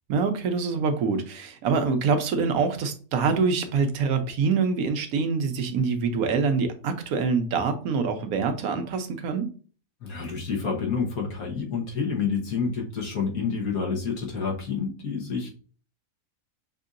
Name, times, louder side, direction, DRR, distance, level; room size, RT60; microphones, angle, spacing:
voice 1, 0.1-9.5, right 5 dB, 80° right, 7 dB, 1.2 m, -25 dB
voice 2, 10.0-15.5, left 5 dB, 90° left, -1 dB, 1.7 m, -28 dB
5.9 x 2.7 x 2.5 m, 0.40 s
omnidirectional pair, 1.5 m